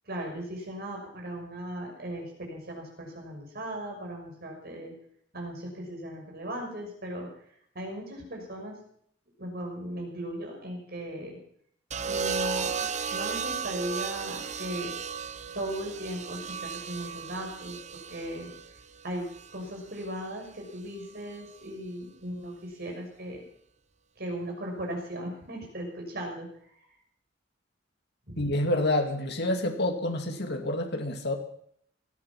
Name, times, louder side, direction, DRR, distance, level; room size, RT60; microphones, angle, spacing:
voice 1, 0.1-4.9 5.3-7.3 7.7-8.8 9.4-11.4 12.1-14.9 15.5-17.8 18.1-18.5 19.0-19.3 19.5-23.4 24.2-26.5 28.3-28.5, right 1 dB, 55° right, 1 dB, 6.4 m, -37 dB
sound 1, 11.9-20.1 21.3-21.7, right 6 dB, 40° right, 1.0 m, -35 dB
voice 2, 28.4-31.4, left 1 dB, 60° left, 4 dB, 2.2 m, -28 dB
18.0 x 13.0 x 5.9 m, 0.66 s
head